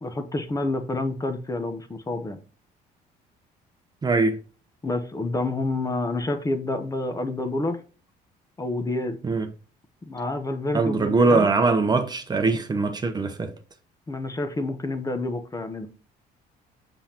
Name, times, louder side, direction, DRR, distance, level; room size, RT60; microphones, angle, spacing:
voice 1, 0.0-2.4 4.8-7.8 8.6-9.2 10.0-11.5 14.1-15.9, left 2 dB, 20° left, 0.9 m, -28 dB
voice 2, 4.0-4.4 9.2-9.5 10.7-13.5, right 3 dB, 25° right, 0.8 m, -22 dB
7.0 x 5.5 x 2.8 m
cardioid pair, 110°, 17 cm